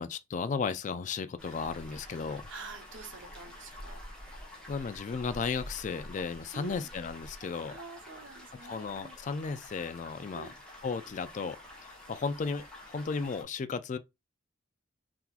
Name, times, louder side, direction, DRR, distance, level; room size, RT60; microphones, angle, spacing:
voice 1, 0.0-2.4 4.7-7.8 8.7-10.5 10.8-14.0, left 5 dB, 40° left, 0.3 m, -35 dB
sound 1, 1.4-13.4, left 1 dB, 5° left, 0.9 m, -48 dB
voice 2, 2.1-4.0 6.5-6.9 7.7-9.2 10.3-10.5, right 4 dB, 65° right, 0.8 m, -47 dB
3.7 x 2.9 x 2.4 m
head